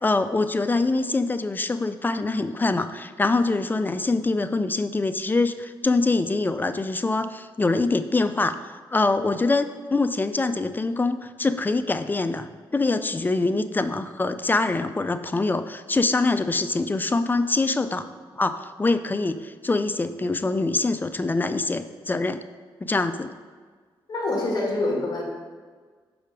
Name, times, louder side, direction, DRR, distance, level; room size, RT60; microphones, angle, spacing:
voice 1, 0.0-18.0 18.4-22.4 22.8-23.3, left 3 dB, 20° left, 11 dB, 0.4 m, -24 dB
voice 2, 24.1-25.2, left 2 dB, 45° left, -1 dB, 2.0 m, -25 dB
6.5 x 4.9 x 5.1 m, 1.5 s
cardioid pair, 90°, 9 cm